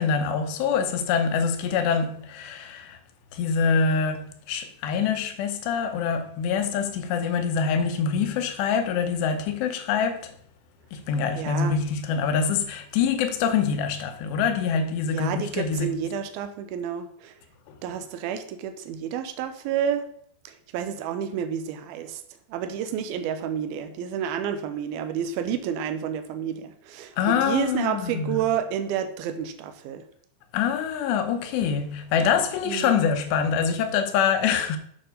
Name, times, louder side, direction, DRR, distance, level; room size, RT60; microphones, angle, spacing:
voice 1, 0.0-3.0 3.3-10.3 10.9-16.0 17.7-17.8 27.2-28.4 30.5-34.8, left 6 dB, 75° left, 2.9 m, -25 dB
voice 2, 11.4-11.8 15.1-17.3 17.8-20.1 20.4-22.2 22.5-30.0 32.7-33.0, right 8 dB, 80° right, 2.3 m, -30 dB
9.0 x 6.0 x 5.3 m
omnidirectional pair, 5.2 m